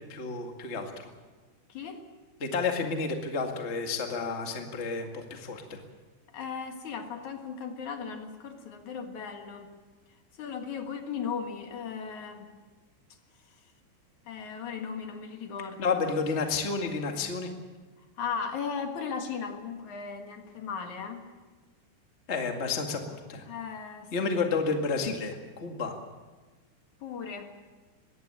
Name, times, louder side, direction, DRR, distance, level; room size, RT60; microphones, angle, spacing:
voice 1, 0.1-0.9 2.4-5.8 15.8-17.5 22.3-23.4 24.1-25.9, left 4 dB, 80° left, 3 dB, 0.6 m, -30 dB
voice 2, 1.7-2.1 6.3-9.7 10.4-12.5 14.3-16.0 18.2-21.2 23.5-24.4 27.0-27.5, left 6 dB, 55° left, 5 dB, 2.5 m, -37 dB
22.0 x 16.5 x 9.0 m, 1.3 s
omnidirectional pair, 5.1 m